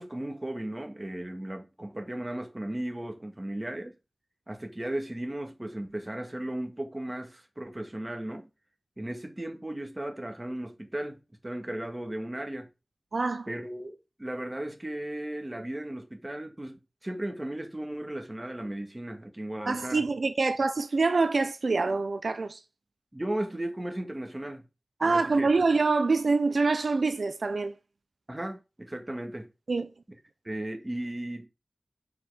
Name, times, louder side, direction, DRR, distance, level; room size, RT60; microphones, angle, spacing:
voice 1, 0.0-4.0 4.5-8.5 9.0-12.7 13.5-20.0 23.1-24.6 25.0-25.5 28.3-29.5 30.4-31.5, right 1 dB, 25° right, 1.8 m, -36 dB
voice 2, 13.1-13.5 19.7-22.6 25.0-27.7 29.7-29.9, right 3 dB, 85° right, 0.5 m, -25 dB
5.7 x 4.9 x 4.9 m
wide cardioid pair, 70°, 0 cm